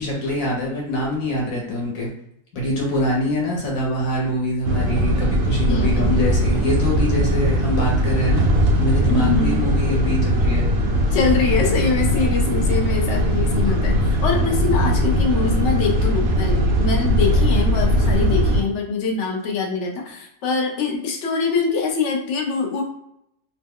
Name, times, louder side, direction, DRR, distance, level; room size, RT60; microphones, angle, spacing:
voice 1, 0.0-2.1 2.5-8.4 8.8-10.6, equal, 85° left, -3 dB, 1.3 m, -24 dB
sound 1, 4.6-18.6, equal, 80° right, 1.0 m, -19 dB
voice 2, 5.7-6.1 9.1-9.8 11.1-22.8, left 4 dB, 65° left, 1 dB, 0.9 m, -24 dB
3.0 x 2.1 x 3.5 m, 0.75 s
omnidirectional pair, 1.4 m